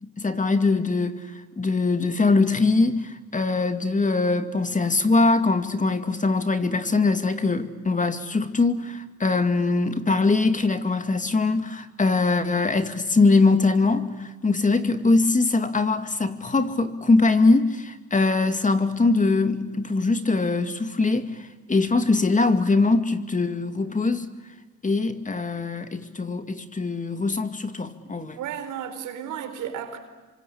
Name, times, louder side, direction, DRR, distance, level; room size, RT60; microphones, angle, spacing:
voice 1, 0.0-24.3 24.8-28.4, left 3 dB, 25° left, 8 dB, 2.3 m, -22 dB
voice 2, 28.4-30.0, right 9 dB, 85° right, 8 dB, 4.3 m, -33 dB
28.0 x 25.0 x 8.6 m, 1.3 s
cardioid pair, 90°, 30 cm